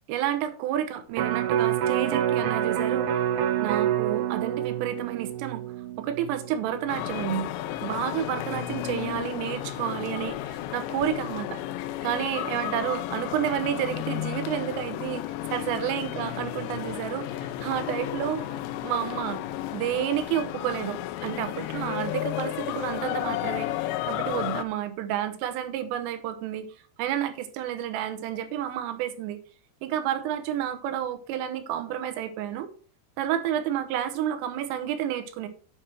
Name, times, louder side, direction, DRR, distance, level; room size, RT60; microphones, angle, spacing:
voice 1, 0.1-3.2 3.6-5.6 6.0-7.5 7.8-11.6 12.0-15.2 15.5-19.4 19.7-23.8 24.1-26.7 27.0-29.4 29.8-32.7 33.2-35.5, right 10 dB, 90° right, 10 dB, 3.6 m, -30 dB
Electric guitar, 1.1-7.4 7.8-7.9, right 10 dB, 70° right, 3.3 m, -27 dB
sound 1, 6.9-24.6, left 14 dB, 80° left, 2.6 m, -33 dB
9.7 x 6.1 x 4.4 m, 0.40 s
omnidirectional pair, 5.7 m